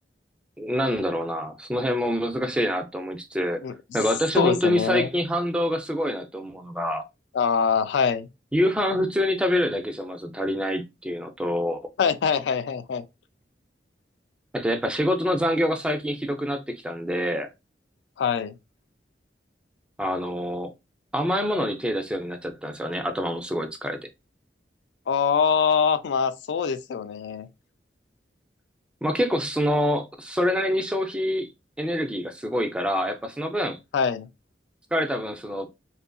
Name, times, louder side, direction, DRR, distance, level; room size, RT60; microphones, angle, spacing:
voice 1, 0.6-3.6 3.9-7.0 8.5-11.8 14.5-17.5 20.0-20.7 21.1-24.0 29.0-31.5 31.8-33.8 34.9-35.7, equal, 5° right, 0.3 m, -26 dB
voice 2, 4.4-5.1 7.3-8.3 12.0-13.1 18.2-18.5 25.1-27.5 33.9-34.3, left 6 dB, 80° left, 0.3 m, -23 dB
2.7 x 2.5 x 2.2 m
head